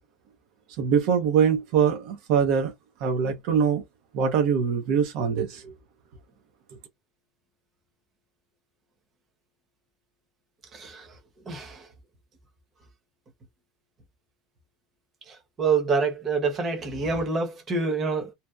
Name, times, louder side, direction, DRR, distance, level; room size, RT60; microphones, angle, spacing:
voice 1, 0.8-2.7 3.0-3.8 4.1-5.7, right 7 dB, 60° right, 0.6 m, -23 dB
voice 2, 10.7-11.1 11.5-11.8 15.6-18.3, right 4 dB, 25° right, 0.9 m, -26 dB
2.7 x 2.1 x 2.3 m
supercardioid pair, 150°, 0 cm